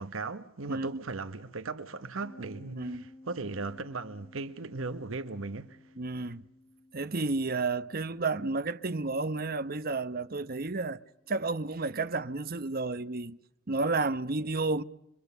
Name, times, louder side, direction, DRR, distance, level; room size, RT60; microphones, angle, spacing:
voice 1, 0.0-5.9, right 3 dB, 75° right, 1.1 m, -37 dB
sound 1, 2.2-11.7, left 2 dB, 35° left, 5.7 m, -56 dB
voice 2, 2.7-3.1 6.0-6.5 6.9-11.0 11.3-13.4 13.7-14.8, right 3 dB, 45° right, 0.9 m, -31 dB
26.0 x 23.5 x 6.8 m
head